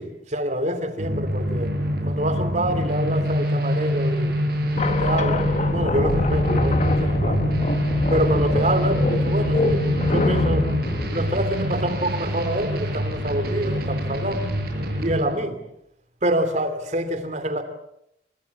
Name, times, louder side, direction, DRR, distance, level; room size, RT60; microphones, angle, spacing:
voice 1, 0.0-1.7 2.0-4.3 4.7-7.4 8.1-10.7 11.1-14.6 15.0-15.6 16.2-17.6, right 1 dB, 40° right, 2.8 m, -26 dB
sound 1, 1.0-15.2, equal, 60° right, 7.0 m, -25 dB
sound 2, 4.8-12.2, left 2 dB, 40° left, 1.1 m, -25 dB
26.5 x 21.5 x 8.3 m
head